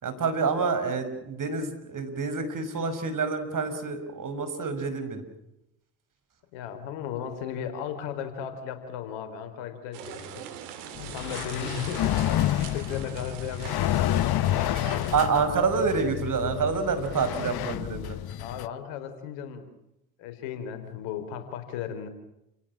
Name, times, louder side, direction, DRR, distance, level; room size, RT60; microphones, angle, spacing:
voice 1, 0.0-5.2 14.9-18.2, right 4 dB, 45° right, 9 dB, 6.1 m, -27 dB
voice 2, 6.5-10.5 11.0-14.2 18.4-19.7 20.2-22.1, left 8 dB, 75° left, 9 dB, 4.6 m, -36 dB
sound 1, 9.9-15.2, right 9 dB, 85° right, 3.2 m, -41 dB
sound 2, 11.0-18.7, left 13 dB, 55° left, 1.1 m, -29 dB
30.0 x 18.0 x 8.9 m, 0.85 s
hypercardioid pair, 60°, 45 cm